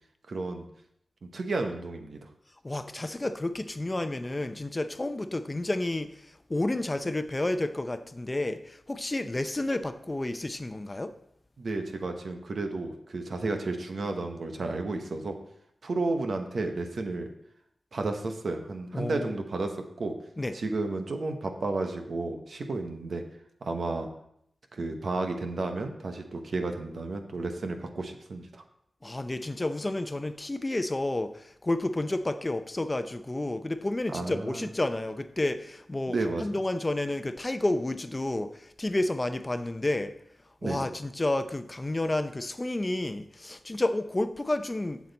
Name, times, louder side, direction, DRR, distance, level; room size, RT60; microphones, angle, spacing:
voice 1, 0.3-0.7 1.2-2.2 11.6-15.4 15.8-17.3 17.9-20.1 20.5-23.2 23.6-24.1 24.7-28.6 34.1-34.7 36.1-36.5 40.6-40.9, right 3 dB, 70° right, 5 dB, 1.1 m, -32 dB
voice 2, 2.6-11.1 18.9-19.4 20.4-20.5 29.0-36.2 36.4-40.1 40.6-45.0, left 2 dB, 30° left, 10 dB, 0.6 m, -30 dB
7.6 x 7.4 x 4.1 m, 0.73 s
cardioid pair, 50°, 0 cm